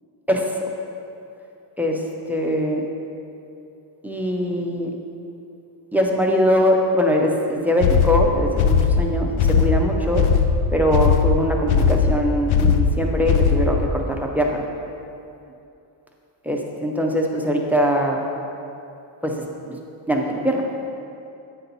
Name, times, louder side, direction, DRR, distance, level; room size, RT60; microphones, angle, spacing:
voice 1, 0.3-0.7 1.8-2.0 2.3-2.8 4.0-4.9 5.9-10.2 10.7-14.7 16.5-18.2 19.2-19.8 20.1-20.6, equal, 5° right, 0 dB, 0.3 m, -22 dB
sound 1, 7.8-13.9, left 6 dB, 90° left, 0.6 m, -18 dB
8.7 x 4.1 x 4.0 m, 2.7 s
cardioid pair, 135°, 48 cm